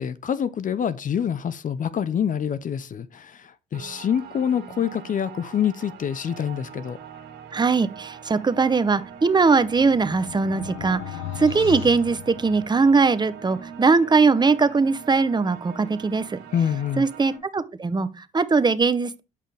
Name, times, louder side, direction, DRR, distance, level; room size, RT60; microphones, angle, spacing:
voice 1, 0.0-7.0 16.5-17.1, left 8 dB, 45° left, 0.7 m, -26 dB
sound 1, 3.7-17.4, right 8 dB, 70° right, 2.0 m, -43 dB
voice 2, 7.5-16.4 17.0-19.2, right 4 dB, 25° right, 0.8 m, -21 dB
sound 2, 9.1-13.0, left 15 dB, 80° left, 0.6 m, -37 dB
8.3 x 5.6 x 3.4 m
supercardioid pair, 60°, 19 cm